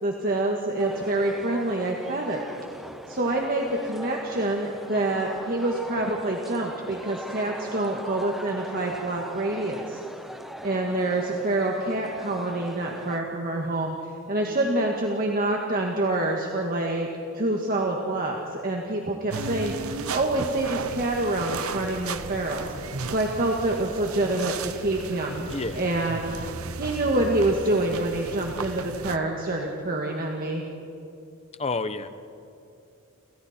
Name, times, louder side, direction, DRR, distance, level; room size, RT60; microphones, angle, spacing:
voice 1, 0.0-2.4 3.1-10.0 10.6-14.0 14.3-17.1 17.3-22.7 23.0-25.5 25.7-26.4 26.8-30.6, right 2 dB, 45° right, 0 dB, 1.8 m, -26 dB
sound 1, 0.8-13.2, equal, ahead, 1.0 m, -41 dB
sound 2, 19.3-29.2, right 4 dB, 80° right, 1.0 m, -35 dB
voice 2, 25.5-25.9 31.6-32.1, left 3 dB, 30° left, 11 dB, 1.0 m, -29 dB
29.5 x 28.0 x 4.4 m, 2.6 s
head